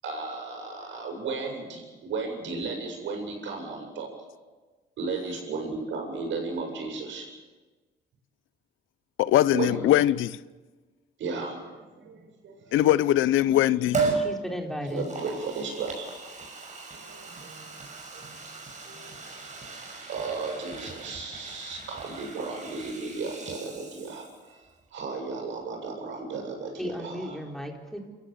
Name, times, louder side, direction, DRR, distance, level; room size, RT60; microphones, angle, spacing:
voice 1, 0.0-4.1 5.0-7.3 9.5-9.8 11.2-12.9 14.9-16.1 16.9-17.7 18.1-18.4 18.9-19.1 19.7-27.4, right 4 dB, 75° right, 7.9 m, -35 dB
voice 2, 9.2-10.4 12.7-14.1, left 13 dB, 85° left, 0.7 m, -21 dB
Liquid, 13.9-14.3 14.9-24.5 24.8-24.9, right 4 dB, 40° right, 5.8 m, -36 dB
voice 3, 14.1-15.0 26.8-28.0, equal, ahead, 3.7 m, -34 dB
27.5 x 15.0 x 8.0 m
cardioid pair, 90°, 20 cm